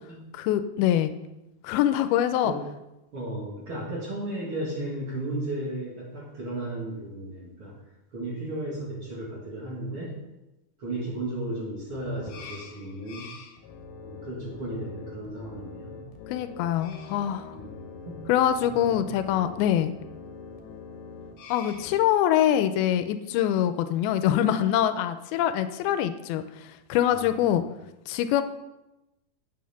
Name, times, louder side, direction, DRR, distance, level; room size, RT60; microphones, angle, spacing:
voice 1, 0.3-1.1 1.6-2.5 16.3-17.5 18.3-19.9 21.5-27.6 28.1-28.4, left 11 dB, 85° left, 11 dB, 2.4 m, -24 dB
voice 2, 3.1-7.7 8.1-10.1 10.8-13.3 14.0-16.1 17.5-18.2 18.6-19.3 27.1-27.4, right 1 dB, 45° right, -3 dB, 2.3 m, -35 dB
sound 1, 11.9-22.0, left 4 dB, 65° left, 2.3 m, -44 dB
8.4 x 6.8 x 5.7 m, 0.98 s
omnidirectional pair, 4.4 m